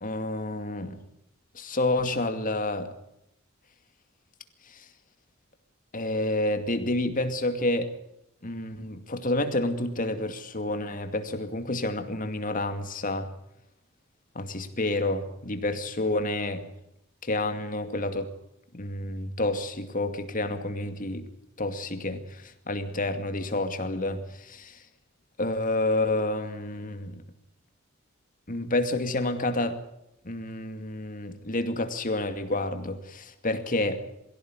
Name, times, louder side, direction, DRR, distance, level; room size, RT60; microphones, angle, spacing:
voice 1, 0.0-1.0 1.5-2.9 4.7-4.9 5.9-7.9 8.4-13.3 14.3-16.6 17.2-18.3 18.7-21.3 21.6-24.8 25.4-27.2 28.5-29.8 30.2-34.0, left 2 dB, 40° left, 7 dB, 2.4 m, -29 dB
23.5 x 16.0 x 9.7 m, 0.81 s
head